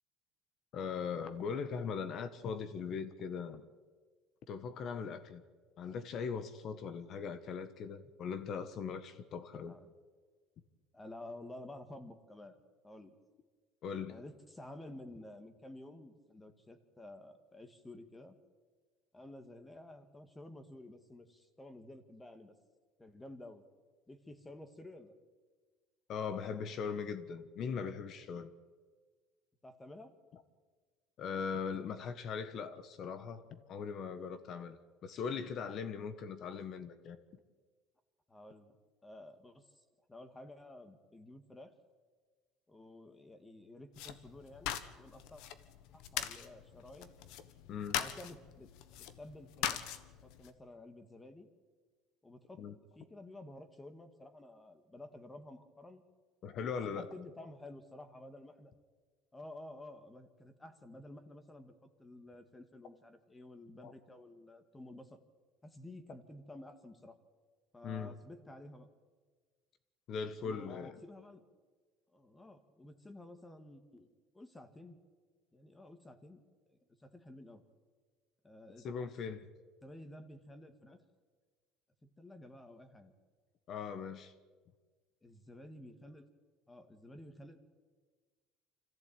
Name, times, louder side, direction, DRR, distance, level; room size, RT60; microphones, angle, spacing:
voice 1, 0.7-3.6 4.5-5.4 5.8-9.8 13.8-14.2 26.1-28.5 30.3-30.4 31.2-37.2 47.7-48.0 52.6-52.7 56.4-57.1 63.8-63.9 67.8-68.2 70.1-71.0 78.8-79.5 83.7-84.3, left 6 dB, 45° left, 12 dB, 1.3 m, -40 dB
voice 2, 10.9-12.6 12.8-13.2 14.1-18.4 19.1-22.5 23.0-23.6 24.1-25.2 29.6-30.1 38.3-38.8 39.0-39.6 40.1-41.7 42.7-45.4 45.9-47.1 48.0-48.7 49.2-49.8 50.2-51.5 52.2-52.6 53.0-56.0 57.0-58.7 59.3-65.2 65.6-67.2 67.7-68.9 70.4-71.4 72.1-74.1 74.3-75.0 75.5-76.4 76.7-77.6 78.4-78.9 79.8-81.0 82.2-83.1 85.2-86.3 86.7-87.6, left 1 dB, 10° left, 9 dB, 2.0 m, -52 dB
sound 1, 43.9-50.5, left 10 dB, 75° left, 1.4 m, -41 dB
25.5 x 14.5 x 8.9 m, 1.5 s
cardioid pair, 130°, 0 cm